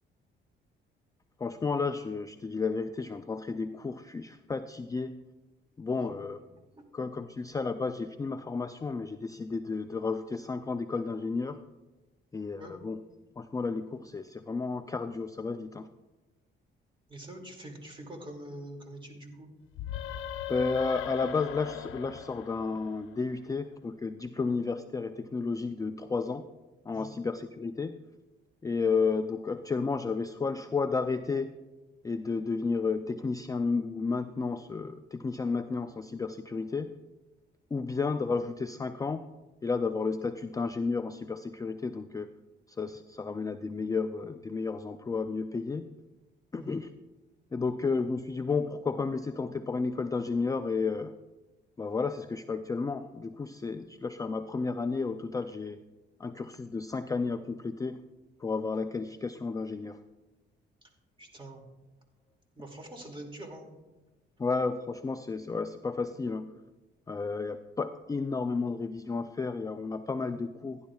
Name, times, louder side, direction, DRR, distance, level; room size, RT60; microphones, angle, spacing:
voice 1, 1.4-5.2 5.8-6.4 6.9-11.6 12.3-13.0 13.4-15.9 20.5-26.4 26.9-28.0 28.6-31.5 32.0-36.9 37.7-39.2 39.6-42.3 42.8-45.9 46.5-46.9 47.5-51.1 51.8-55.8 56.2-58.0 58.4-60.0 64.4-66.5 67.1-70.8, left 4 dB, 15° left, 8 dB, 0.4 m, -32 dB
voice 2, 5.9-6.2 6.7-6.8 12.6-12.8 17.1-19.5 26.9-27.2 46.5-46.8 60.8-60.9 61.2-61.6 62.5-63.7 70.1-70.3, right 1 dB, 25° right, 2 dB, 2.4 m, -45 dB
sound 1, 19.7-23.3, left 10 dB, 90° left, 0.6 m, -39 dB
16.0 x 10.5 x 2.4 m, 1.1 s
cardioid pair, 90°, 20 cm